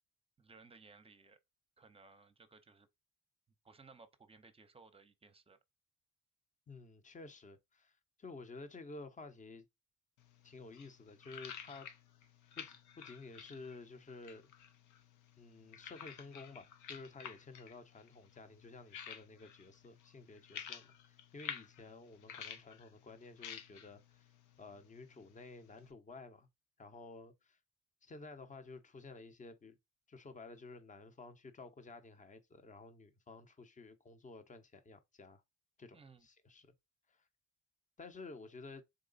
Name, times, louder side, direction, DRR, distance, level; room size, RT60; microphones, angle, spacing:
voice 1, 0.4-1.4 1.8-2.9 3.6-5.6 35.9-36.3, right 4 dB, 20° right, 0.7 m, -60 dB
voice 2, 6.7-9.7 10.4-11.9 12.6-14.5 15.4-24.3 24.6-26.5 26.8-27.6 28.0-29.8 30.1-35.4 35.8-36.7 37.1-37.2 38.0-38.8, left 3 dB, 25° left, 0.8 m, -52 dB
sound 1, 10.2-25.9, left 8 dB, 75° left, 0.7 m, -52 dB
3.9 x 3.1 x 3.9 m
cardioid pair, 90°, 30 cm